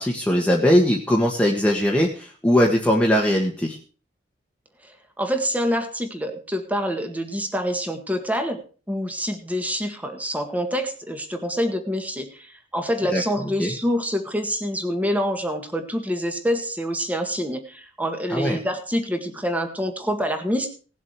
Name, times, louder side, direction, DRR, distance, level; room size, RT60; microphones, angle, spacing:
voice 1, 0.0-3.8 13.1-13.7 18.3-18.6, equal, 5° left, -1 dB, 1.5 m, -20 dB
voice 2, 5.2-8.6 8.9-20.7, equal, 10° right, 6 dB, 1.8 m, -26 dB
18.5 x 7.5 x 4.6 m, 0.37 s
head